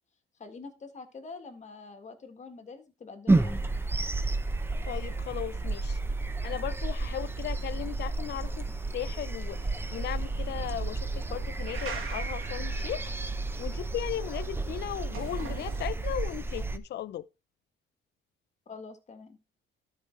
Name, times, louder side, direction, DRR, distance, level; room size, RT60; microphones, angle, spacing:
voice 1, 0.4-3.7 8.3-8.5 18.7-19.4, left 4 dB, 35° left, 1.7 m, -46 dB
sound 1, 3.3-16.8, right 2 dB, 10° right, 0.7 m, -31 dB
voice 2, 4.9-6.0 6.4-8.7 8.9-13.0 13.6-17.3, left 12 dB, 55° left, 0.5 m, -36 dB
sound 2, 9.5-15.9, right 6 dB, 85° right, 2.7 m, -44 dB
12.5 x 4.8 x 4.5 m
cardioid pair, 140°, 21 cm